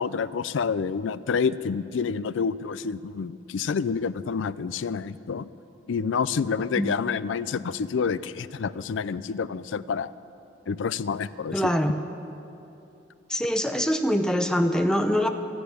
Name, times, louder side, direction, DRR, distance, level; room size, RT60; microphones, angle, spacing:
voice 1, 0.0-5.5 5.9-10.1 10.7-11.7, left 5 dB, 85° left, 16 dB, 0.4 m, -28 dB
voice 2, 11.5-12.0 13.3-15.3, equal, 5° left, 6 dB, 0.6 m, -23 dB
13.0 x 10.5 x 9.6 m, 2.8 s
head